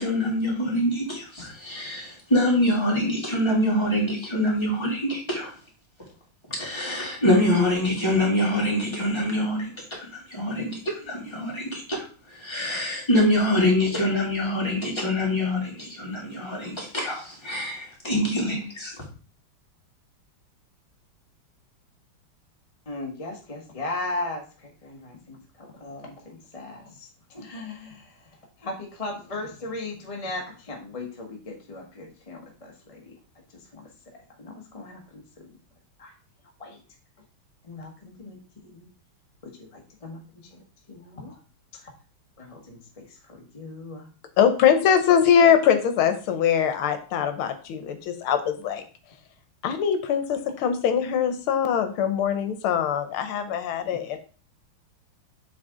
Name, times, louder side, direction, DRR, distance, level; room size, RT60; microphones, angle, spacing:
voice 1, 0.0-5.5 6.6-12.0 12.4-18.9, left 1 dB, 15° left, -4 dB, 2.4 m, -25 dB
voice 2, 22.9-28.2 28.6-33.1 33.5-33.9 34.4-35.5 36.0-36.1 36.6-36.8 37.6-38.8 39.4-40.2 40.5-40.6 40.9-41.4 41.8-41.9 42.4-44.1, left 2 dB, 30° left, 0 dB, 0.7 m, -37 dB
voice 3, 44.4-48.8 49.6-54.2, left 8 dB, 80° left, 8 dB, 1.6 m, -22 dB
7.6 x 4.1 x 3.6 m, 0.38 s
omnidirectional pair, 2.3 m